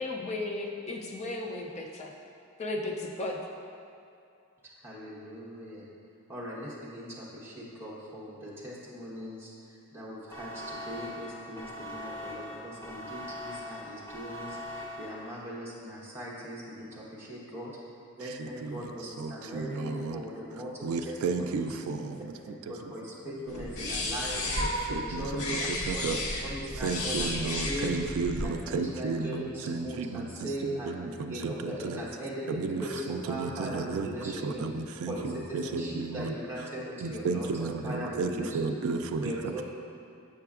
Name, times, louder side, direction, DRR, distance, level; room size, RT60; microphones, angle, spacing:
voice 1, 0.0-2.1 2.6-3.4, left 2 dB, 30° left, 0 dB, 0.4 m, -35 dB
voice 2, 4.8-5.9 6.3-17.7 18.2-21.7 22.2-22.3 22.7-24.5 24.9-27.4 27.7-28.0 28.4-34.7 35.1-38.8 39.2-39.6, equal, 10° right, -7 dB, 1.0 m, -39 dB
sound 1, 10.3-15.6, equal, 10° left, 0.8 m, -41 dB
voice 3, 19.2-20.2 20.8-22.3 22.7-22.8 23.8-24.0 24.9-26.2 26.8-32.0 32.6-35.1 35.5-36.3 37.0-39.3, right 4 dB, 80° right, 6 dB, 0.3 m, -33 dB
sound 2, 23.5-28.5, left 1 dB, 85° left, 0.7 m, -33 dB
6.6 x 6.5 x 2.4 m, 2.5 s
head